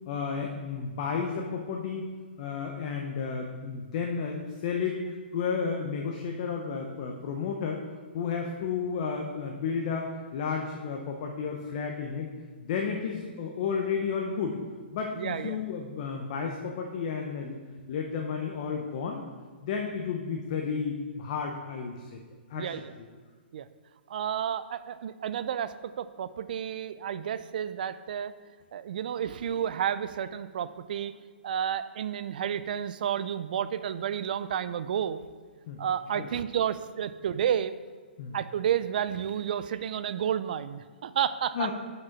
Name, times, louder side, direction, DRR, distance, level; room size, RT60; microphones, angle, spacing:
voice 1, 0.1-2.1 2.4-5.0 5.3-7.8 8.1-12.3 12.6-14.6 14.9-17.6 17.9-19.2 19.6-22.2 22.5-22.7 35.7-35.8 36.1-36.3 38.2-38.4 41.5-41.7, left 6 dB, 40° left, 2 dB, 0.7 m, -32 dB
voice 2, 15.2-15.6 22.5-22.8 23.5-23.7 24.1-28.3 28.7-31.1 31.4-35.2 35.8-37.7 38.3-41.7, right 9 dB, 50° right, 13 dB, 0.3 m, -31 dB
6.1 x 5.3 x 5.8 m, 1.5 s
hypercardioid pair, 160°, 6 cm